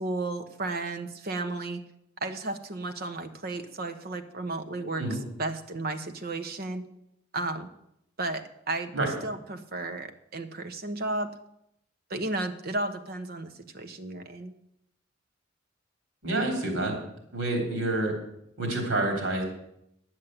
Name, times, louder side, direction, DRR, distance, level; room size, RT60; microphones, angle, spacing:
voice 1, 0.0-1.8 2.2-6.8 7.3-7.7 8.2-8.9 9.2-11.3 12.1-14.5, right 2 dB, 50° right, 8 dB, 1.1 m, -33 dB
voice 2, 16.2-16.9 17.3-18.1 18.6-19.4, right 2 dB, 80° right, 2 dB, 3.6 m, -28 dB
10.5 x 7.4 x 7.8 m, 0.78 s
head